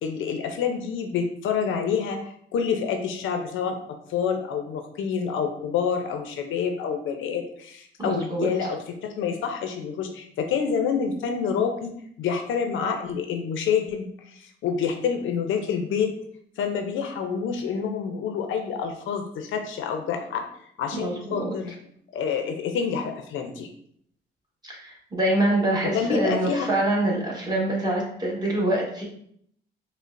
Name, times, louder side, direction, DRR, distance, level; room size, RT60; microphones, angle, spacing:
voice 1, 0.0-11.9 12.2-16.1 16.6-20.4 20.8-21.7 22.1-23.7 25.9-26.7, left 6 dB, 80° left, 5 dB, 0.5 m, -27 dB
voice 2, 8.0-8.7 20.9-21.6 24.6-29.0, right 1 dB, 20° right, -3 dB, 1.2 m, -25 dB
5.1 x 2.1 x 2.5 m, 0.67 s
cardioid pair, 90°, 20 cm